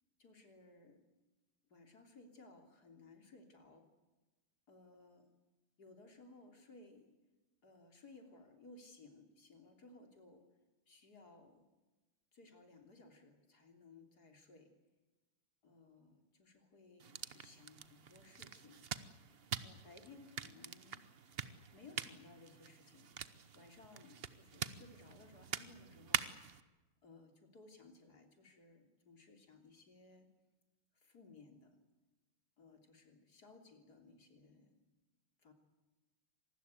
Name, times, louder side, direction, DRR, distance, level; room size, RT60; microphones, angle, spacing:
voice 1, 0.2-1.0 1.7-3.9 4.7-5.3 5.8-7.1 7.6-10.5 10.9-11.6 12.3-14.7 15.6-18.8 19.6-21.1 21.7-23.1 23.5-26.3 27.0-30.3 30.9-31.8 32.6-34.8 35.4-35.5, left 3 dB, 60° left, 5 dB, 3.8 m, -60 dB
sound 1, 17.0-26.6, right 7 dB, 45° right, 0.9 m, -45 dB
27.0 x 19.5 x 8.3 m, 1.1 s
omnidirectional pair, 1.9 m